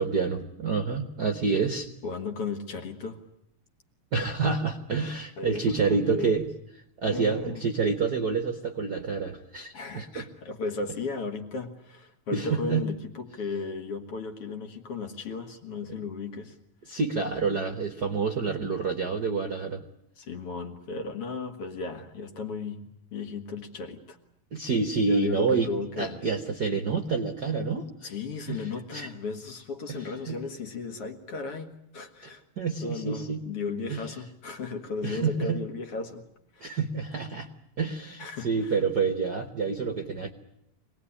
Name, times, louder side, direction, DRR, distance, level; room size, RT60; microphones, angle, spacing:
voice 1, 0.0-1.9 4.1-6.5 7.0-10.2 12.3-12.9 16.9-19.8 24.5-25.7 26.0-28.1 28.5-29.1 29.9-30.4 32.6-33.4 33.9-34.0 35.0-35.6 36.6-37.5 37.8-40.3, right 4 dB, 50° right, 6 dB, 1.2 m, -28 dB
voice 2, 2.0-3.2 5.4-6.4 7.1-7.7 9.7-16.6 16.9-17.0 20.2-24.2 25.0-26.2 28.0-32.4 32.8-36.3 36.5-36.8 38.2-38.8, left 4 dB, 55° left, 5 dB, 2.5 m, -35 dB
25.5 x 19.0 x 10.0 m, 0.80 s
omnidirectional pair, 3.4 m